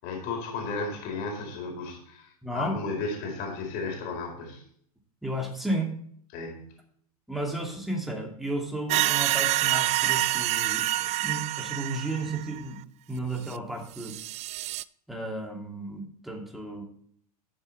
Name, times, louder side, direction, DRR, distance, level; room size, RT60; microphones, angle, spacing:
voice 1, 0.0-4.6 6.3-6.7, left 3 dB, 55° left, 1 dB, 4.5 m, -34 dB
voice 2, 2.4-2.7 5.2-5.9 7.3-12.8 13.1-14.1 15.1-16.8, right 1 dB, ahead, 0 dB, 2.7 m, -33 dB
sound 1, 8.9-12.6 13.5-13.6 13.9-14.8, right 16 dB, 35° right, 0.4 m, -27 dB
12.0 x 7.3 x 4.2 m, 0.62 s
hypercardioid pair, 110°, 19 cm